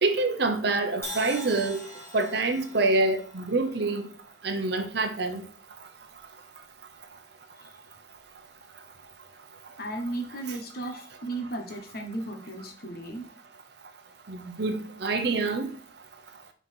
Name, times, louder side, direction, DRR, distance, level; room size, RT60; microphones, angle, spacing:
voice 1, 0.0-1.8 2.1-4.1 4.4-5.4 14.3-15.7, right 3 dB, 60° right, 0.9 m, -26 dB
Crash cymbal, 1.0-5.1, left 1 dB, 15° left, 1.6 m, -43 dB
voice 2, 9.8-13.2, right 2 dB, 55° left, 1.1 m, -35 dB
5.7 x 4.0 x 4.5 m
head